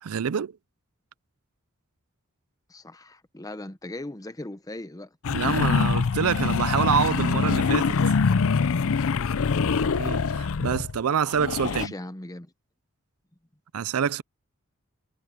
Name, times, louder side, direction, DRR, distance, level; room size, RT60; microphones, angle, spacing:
voice 1, 0.0-0.6 5.3-8.2 9.9-11.9 13.7-14.2, right 7 dB, 70° right, 0.5 m, -26 dB
voice 2, 2.7-5.1 11.5-12.5, left 1 dB, 15° left, 0.9 m, -39 dB
sound 1, 5.2-11.0 11.3-11.9, left 5 dB, 65° left, 0.5 m, -24 dB
head